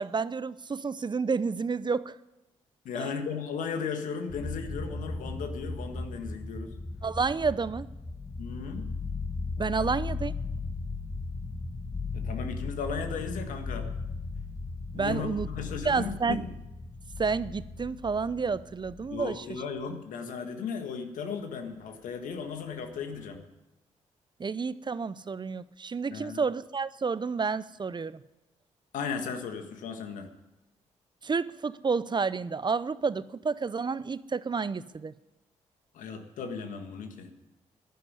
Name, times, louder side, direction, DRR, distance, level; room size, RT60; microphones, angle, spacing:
voice 1, 0.0-2.2 3.0-3.1 7.0-7.9 9.6-10.4 14.9-15.5 15.8-16.4 17.2-19.4 24.4-28.2 31.2-35.1, right 5 dB, 35° right, 16 dB, 0.6 m, -30 dB
voice 2, 2.8-6.7 8.4-8.8 12.1-13.9 14.9-16.5 19.1-23.4 26.1-26.4 28.9-30.3 35.9-37.3, left 6 dB, 80° left, 6 dB, 1.7 m, -36 dB
sound 1, 4.3-19.6 22.7-23.4, left 3 dB, 20° left, 2.0 m, -37 dB
11.0 x 11.0 x 9.8 m, 0.98 s
supercardioid pair, 50°, 13 cm